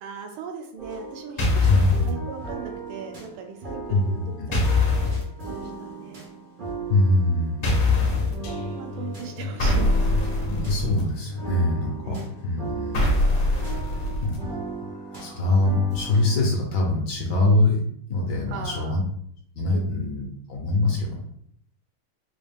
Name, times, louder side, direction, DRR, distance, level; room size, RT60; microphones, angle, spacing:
voice 1, 0.0-1.7 2.1-5.4 5.8-6.3 8.4-10.5 12.0-12.3 18.5-19.0 19.7-20.1, right 6 dB, 85° right, 3 dB, 1.5 m, -39 dB
sound 1, 0.8-16.4, right 3 dB, 65° right, 0.4 m, -38 dB
sound 2, 1.4-2.1 4.5-5.2 7.6-8.3 9.6-11.0 12.9-14.4, left 2 dB, 50° left, 0.9 m, -22 dB
voice 2, 1.7-2.2 3.9-4.0 4.4-4.5 6.9-8.3 10.5-13.2 13.6-13.7 13.9-14.6 14.9-17.8 18.1-19.0 19.5-21.2, left 2 dB, 65° left, -1 dB, 1.2 m, -24 dB
sound 3, 8.4-15.5 15.9-16.2 16.5-16.6, left 3 dB, 80° left, 1.4 m, -38 dB
4.1 x 2.4 x 3.4 m, 0.66 s
omnidirectional pair, 2.4 m